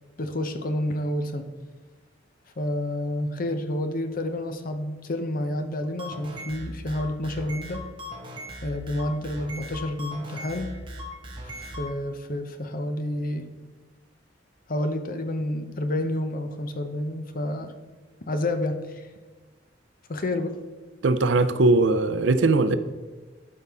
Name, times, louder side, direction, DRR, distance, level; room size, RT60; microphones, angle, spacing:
voice 1, 0.2-1.4 2.6-7.8 8.6-10.7 11.4-13.5 14.7-17.7 18.2-19.1 20.1-20.6, left 1 dB, 50° left, 8 dB, 0.7 m, -29 dB
sound 1, 5.8-11.9, equal, 25° right, 1.3 m, -38 dB
voice 2, 21.0-22.8, right 2 dB, 70° right, 12 dB, 0.5 m, -20 dB
12.0 x 5.4 x 3.6 m, 1.3 s
head